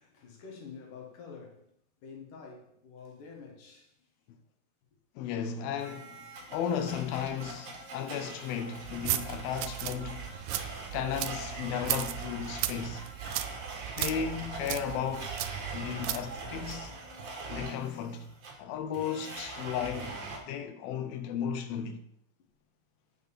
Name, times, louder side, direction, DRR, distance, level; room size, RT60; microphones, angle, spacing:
voice 1, 0.0-1.7 2.0-4.1, left 5 dB, 65° left, 3.1 m, -48 dB
voice 2, 5.2-10.4 10.9-13.1 14.0-15.4 15.7-16.9 17.5-18.3 18.6-20.2 20.5-22.0, left 8 dB, 90° left, 2.7 m, -35 dB
Domestic sounds home sounds, 5.8-20.4, right 3 dB, 50° right, 1.5 m, -42 dB
sound 1, 8.8-16.9, right 14 dB, 80° right, 2.1 m, -37 dB
7.0 x 6.6 x 7.1 m
omnidirectional pair, 4.1 m